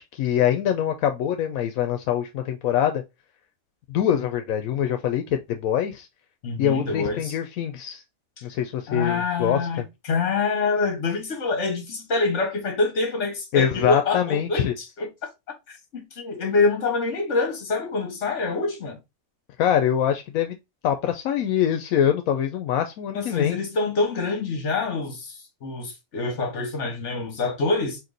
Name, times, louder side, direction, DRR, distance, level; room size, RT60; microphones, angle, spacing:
voice 1, 0.0-3.0 3.9-6.1 6.6-8.0 8.4-9.6 13.5-14.7 19.6-20.5 20.8-23.6, left 9 dB, 85° left, 1.0 m, -24 dB
voice 2, 6.4-7.3 8.9-15.1 15.7-19.0 23.1-28.0, left 3 dB, 60° left, 1.5 m, -26 dB
4.5 x 2.6 x 3.8 m
omnidirectional pair, 1.4 m